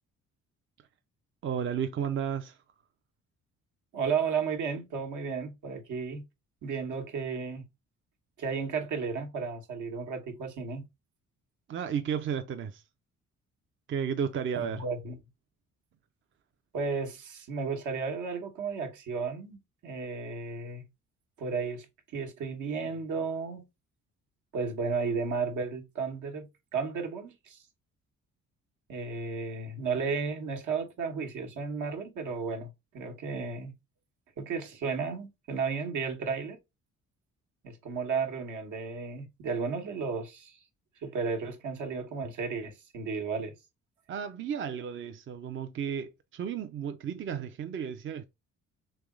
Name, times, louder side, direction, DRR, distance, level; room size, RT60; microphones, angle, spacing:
voice 1, 1.4-2.6 11.7-12.8 13.9-14.8 44.1-48.2, right 8 dB, 40° right, 0.5 m, -33 dB
voice 2, 3.9-6.2 6.6-7.6 8.4-10.9 14.5-15.2 16.7-20.8 21.4-21.9 22.1-23.6 24.5-27.6 28.9-33.7 34.4-36.6 37.6-40.6 41.0-43.5, right 5 dB, 75° right, 1.2 m, -33 dB
3.4 x 3.1 x 3.7 m
cardioid pair, 90°, 30 cm